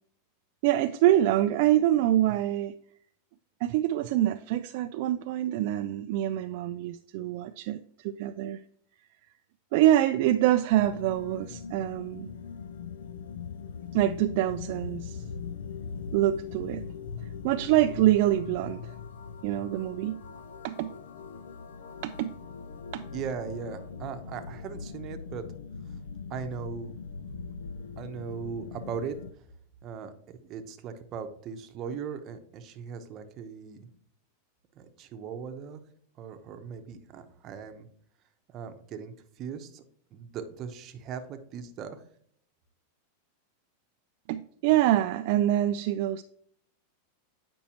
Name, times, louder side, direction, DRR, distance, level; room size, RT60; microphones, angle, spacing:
voice 1, 0.6-2.7 3.6-8.6 9.7-12.3 13.9-15.2 16.1-16.8 17.4-19.0 19.4-20.2 20.6-20.9 22.0-22.3 22.9-23.0 44.3-46.2, right 13 dB, 55° right, 8 dB, 0.3 m, -25 dB
sound 1, 10.7-29.3, left 6 dB, 90° left, 0.4 m, -41 dB
voice 2, 23.1-25.5 26.3-27.0 28.0-29.4 29.8-33.9 34.7-35.8 36.2-37.9 38.5-39.8 40.1-42.0, right 6 dB, 35° right, 7 dB, 0.8 m, -39 dB
8.5 x 5.3 x 2.9 m, 0.64 s
supercardioid pair, 150°, 0 cm